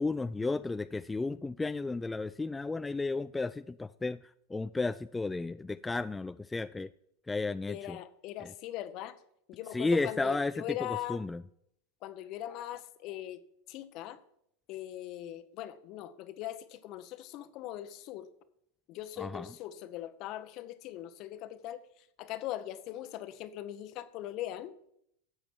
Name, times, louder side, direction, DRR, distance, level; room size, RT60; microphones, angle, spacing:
voice 1, 0.0-4.2 4.5-6.9 7.3-8.0 9.7-10.6 11.1-11.4 19.2-19.5, left 3 dB, 10° left, 0.3 m, -33 dB
voice 2, 7.7-9.2 9.5-11.2 12.0-13.4 13.7-14.2 14.7-18.3 18.9-24.7, left 13 dB, 50° left, 1.0 m, -40 dB
13.5 x 7.9 x 4.7 m
hypercardioid pair, 90°, 0 cm